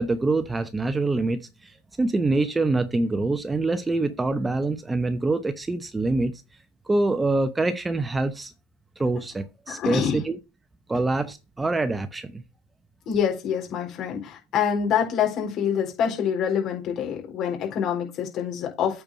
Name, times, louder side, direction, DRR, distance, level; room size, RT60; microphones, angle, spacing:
voice 1, 0.0-6.3 6.9-8.5 9.0-10.4 10.9-12.4, right 2 dB, 15° right, 0.8 m, -25 dB
voice 2, 9.7-10.2 13.1-19.0, left 8 dB, 45° left, 4.1 m, -26 dB
8.6 x 4.7 x 5.4 m
hypercardioid pair, 90°, 0 cm